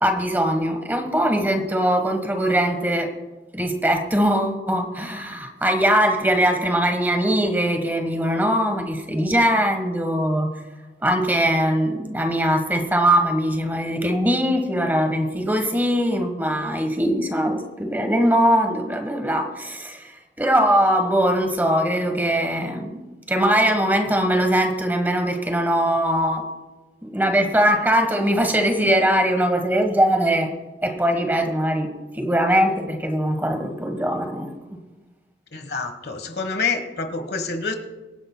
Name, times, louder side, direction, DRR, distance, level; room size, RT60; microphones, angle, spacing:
voice 1, 0.0-3.1 3.5-10.5 11.0-22.9 23.3-26.4 27.0-30.5 30.8-34.5, equal, 10° right, 5 dB, 1.2 m, -21 dB
voice 2, 35.5-37.7, left 4 dB, 60° left, 7 dB, 1.3 m, -27 dB
24.5 x 9.9 x 2.2 m, 1.1 s
head